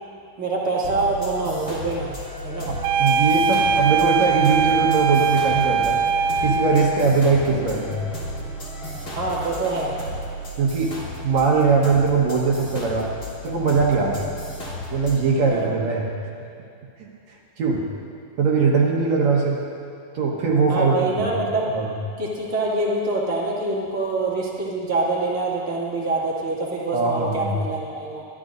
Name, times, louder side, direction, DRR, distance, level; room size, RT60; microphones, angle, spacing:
voice 1, 0.4-2.2 2.4-2.7 9.1-10.0 15.5-15.7 20.7-21.7 22.2-28.2, right 2 dB, 30° right, -5 dB, 2.0 m, -25 dB
sound 1, 0.8-15.3, equal, 30° left, 1.9 m, -34 dB
voice 2, 2.7-6.0 6.4-8.0 10.6-11.0 11.2-13.2 13.4-14.4 14.9-16.1 17.0-17.1 17.6-17.9 18.4-19.6 20.1-20.9 21.2-21.3 21.7-21.8 26.9-27.5, right 4 dB, 60° right, -2 dB, 2.3 m, -21 dB
sound 2, 2.8-7.0, right 6 dB, 90° right, 2.3 m, -21 dB
26.0 x 12.5 x 2.6 m, 2.6 s
omnidirectional pair, 4.0 m